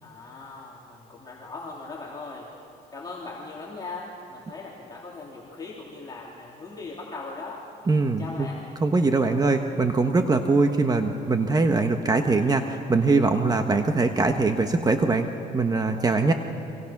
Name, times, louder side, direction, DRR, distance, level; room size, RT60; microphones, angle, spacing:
voice 1, 0.0-2.5 2.9-7.7 8.2-8.7, left 3 dB, 25° left, -4 dB, 3.5 m, -39 dB
voice 2, 7.9-8.2 8.8-15.3 15.5-16.3, right 3 dB, 20° right, 6 dB, 1.2 m, -22 dB
29.0 x 25.0 x 6.1 m, 2.7 s
cardioid pair, 110°, 17 cm